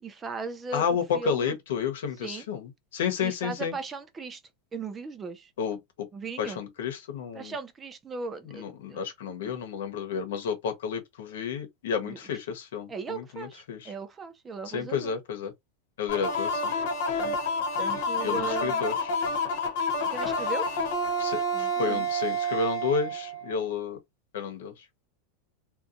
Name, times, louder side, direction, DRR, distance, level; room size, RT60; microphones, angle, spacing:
voice 1, 0.0-1.6 2.2-2.5 3.2-4.4 4.7-5.5 6.1-6.6 7.3-9.0 9.4-9.5 12.0-12.2 12.9-15.1 17.2-17.4 17.8-18.9 20.1-20.7 21.5-22.1, right 4 dB, 15° right, 0.3 m, -37 dB
voice 2, 0.7-3.7 5.6-6.1 6.4-7.5 8.5-13.9 14.7-15.5 16.0-16.7 18.2-19.1 21.2-24.0 24.3-24.7, left 6 dB, 85° left, 1.0 m, -31 dB
sound 1, 16.1-23.7, left 1 dB, 55° left, 0.9 m, -29 dB
2.8 x 2.2 x 2.5 m
supercardioid pair, 180°, 0 cm